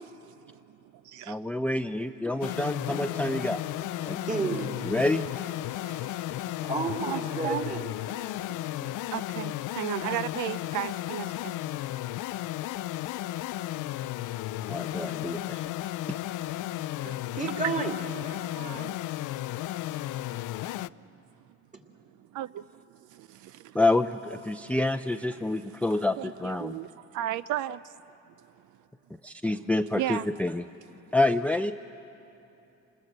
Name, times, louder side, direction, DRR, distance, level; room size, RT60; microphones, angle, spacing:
voice 1, 0.2-1.5 2.4-2.6 4.0-4.3 5.6-7.7 8.0-11.6 13.2-13.3 14.9-15.1 16.7-17.3 18.3-19.0 19.3-19.4 19.8-20.2 20.4-20.8 22.2-23.8 24.5-24.7 25.5-27.9 28.3-28.4 28.6-28.8 29.9-30.3, right 12 dB, 80° right, 0.5 m, -37 dB
voice 2, 1.3-3.6 4.1-4.2 4.8-5.2 14.7-15.6 16.1-16.2 23.7-26.8 29.2-30.6 31.1-31.7, left 2 dB, 5° left, 0.5 m, -27 dB
sound 1, 2.4-20.9, left 15 dB, 80° left, 0.5 m, -34 dB
voice 3, 4.3-4.7 6.6-7.8 15.5-15.7 17.3-17.9, right 3 dB, 25° right, 2.7 m, -31 dB
27.5 x 20.0 x 7.9 m
cardioid pair, 90°, 30 cm